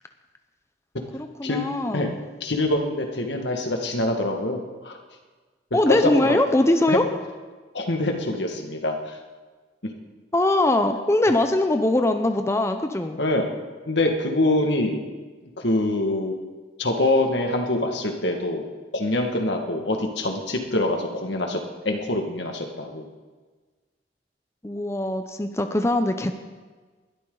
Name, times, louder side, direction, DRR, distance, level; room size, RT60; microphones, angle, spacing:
voice 1, 1.1-2.2 5.7-7.0 10.3-13.2 24.6-26.4, left 1 dB, 15° left, 6 dB, 0.7 m, -22 dB
voice 2, 2.4-5.0 5.9-6.4 6.9-7.0 7.7-9.2 13.2-13.5 13.9-15.0 15.6-16.3 16.8-18.7 18.9-21.6 21.8-23.1, left 2 dB, 75° left, 3 dB, 1.9 m, -24 dB
20.5 x 12.5 x 4.0 m, 1.4 s
head